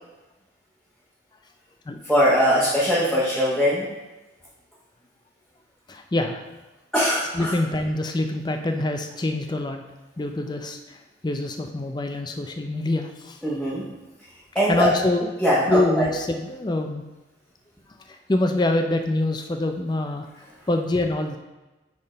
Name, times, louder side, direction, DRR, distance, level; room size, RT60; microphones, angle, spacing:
voice 1, 2.1-3.9 6.9-7.5 13.4-13.8 14.5-14.9 15.4-16.1, equal, 5° left, -9 dB, 1.0 m, -21 dB
voice 2, 5.9-6.4 7.3-9.8 10.2-13.4 14.7-15.3 15.7-17.0 18.1-20.3 20.7-21.4, left 2 dB, 20° left, 5 dB, 0.4 m, -25 dB
6.5 x 3.6 x 5.0 m, 1.1 s
head